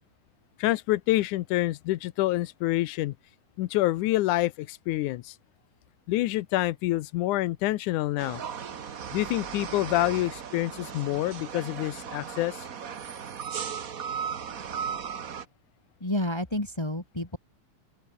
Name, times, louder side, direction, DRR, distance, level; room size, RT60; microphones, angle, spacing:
voice 1, 0.6-3.2 3.6-5.3 6.1-8.4 9.1-12.7, left 17 dB, 85° left, 2.3 m, -27 dB
sound 1, 8.2-15.4, right 7 dB, 50° right, 1.0 m, -36 dB
voice 2, 16.0-17.4, left 1 dB, 10° left, 1.4 m, -30 dB
open air
omnidirectional pair, 3.4 m